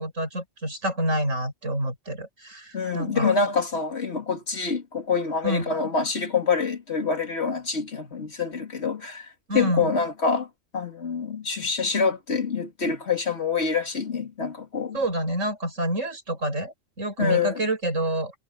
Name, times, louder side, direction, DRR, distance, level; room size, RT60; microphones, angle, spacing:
voice 1, 0.0-3.3 5.4-5.7 9.5-9.9 14.9-18.3, right 1 dB, 90° right, 7.0 m, -28 dB
voice 2, 2.7-9.3 9.5-10.5 10.7-15.0 17.2-17.6, left 5 dB, 60° left, 2.5 m, -26 dB
omnidirectional pair, 1.3 m